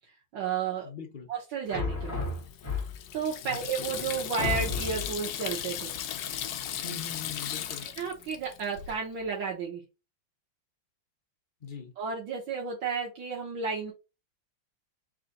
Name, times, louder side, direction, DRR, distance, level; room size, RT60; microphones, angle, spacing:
voice 1, 0.3-0.9 1.3-2.2 3.1-5.9 7.8-9.8 12.0-13.9, right 6 dB, 80° right, 1.8 m, -32 dB
voice 2, 0.8-1.3 3.4-3.7 6.8-7.9 11.6-11.9, left 6 dB, 55° left, 0.5 m, -42 dB
sound 1, 1.7-3.2 3.8-3.9 4.4-5.2, left 3 dB, 10° left, 1.3 m, -32 dB
Water tap faucet / Sink (filling or washing), 2.2-9.0, left 10 dB, 75° left, 1.2 m, -37 dB
3.7 x 3.2 x 3.8 m
omnidirectional pair, 2.1 m